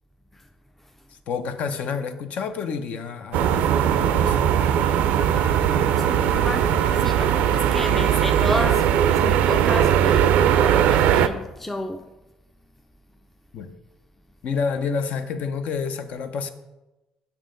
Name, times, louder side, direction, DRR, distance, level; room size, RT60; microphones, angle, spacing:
voice 1, 1.3-4.5 13.5-13.8 14.4-16.5, left 5 dB, 65° left, 0.6 m, -29 dB
sound 1, 3.3-11.3, right 9 dB, 85° right, 0.3 m, -19 dB
Bowed string instrument, 5.1-9.1, equal, 40° left, 1.8 m, -39 dB
voice 2, 6.0-12.1, left 1 dB, 10° left, 0.4 m, -31 dB
7.1 x 5.6 x 3.8 m
cardioid pair, 95°, 3 cm